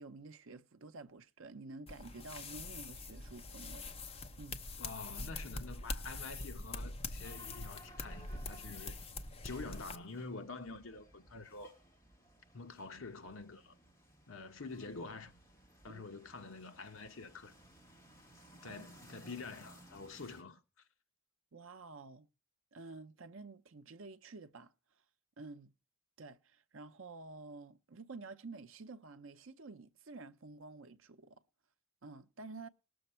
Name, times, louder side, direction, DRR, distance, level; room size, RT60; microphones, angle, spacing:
voice 1, 0.0-3.9 4.4-4.6 15.9-16.0 18.6-18.9 19.2-19.3 21.5-22.3 22.7-24.7 25.4-25.7 26.2-31.4 32.0-32.7, right 3 dB, 60° right, 0.7 m, -50 dB
sound 1, 1.9-9.9, left 2 dB, 30° left, 0.8 m, -44 dB
voice 2, 4.8-8.9 9.4-11.7 12.5-13.8 14.3-15.4 15.8-17.5 18.5-20.6, left 3 dB, 65° left, 1.0 m, -47 dB
sound 2, 7.2-20.4, equal, 15° left, 2.2 m, -60 dB
19.5 x 7.0 x 4.3 m
head